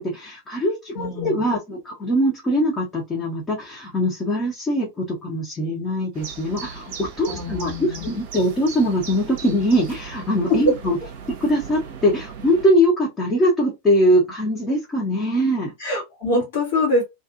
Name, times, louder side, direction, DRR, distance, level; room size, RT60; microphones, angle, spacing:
voice 1, 0.0-11.0 11.4-15.7, equal, 20° left, 0.9 m, -22 dB
voice 2, 0.9-1.4 7.3-8.2 10.5-10.6 15.8-17.0, left 2 dB, 55° left, 1.2 m, -24 dB
sound 1, 6.1-12.7, right 6 dB, 50° right, 0.8 m, -38 dB
2.5 x 2.5 x 2.5 m
figure-of-eight pair, 90°, 0 cm